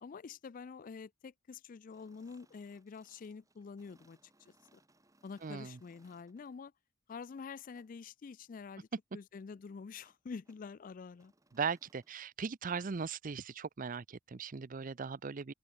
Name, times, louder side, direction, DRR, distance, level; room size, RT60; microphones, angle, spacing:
voice 1, 0.0-4.5 5.2-6.7 7.1-8.9 9.1-11.3, left 5 dB, 40° left, 0.4 m, -47 dB
sound 1, 1.9-6.6 7.7-7.9 10.0-10.2 10.4-10.7 11.1-12.1, right 2 dB, 15° right, 2.9 m, -70 dB
voice 2, 5.4-5.8 11.5-15.5, right 5 dB, 40° right, 0.5 m, -38 dB
head